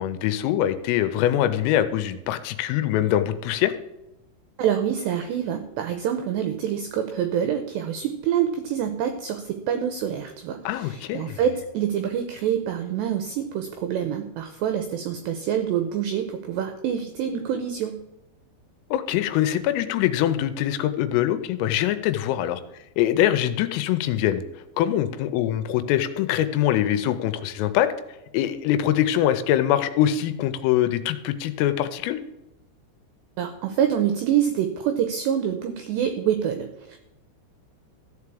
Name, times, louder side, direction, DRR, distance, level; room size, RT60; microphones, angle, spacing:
voice 1, 0.0-3.7 10.7-11.4 18.9-22.6 23.0-24.4 24.8-27.9 28.3-32.2, left 12 dB, 85° left, 10 dB, 3.4 m, -23 dB
voice 2, 4.6-18.0 33.4-37.0, right 9 dB, 85° right, 8 dB, 2.4 m, -26 dB
14.0 x 4.8 x 8.4 m, 0.92 s
omnidirectional pair, 6.0 m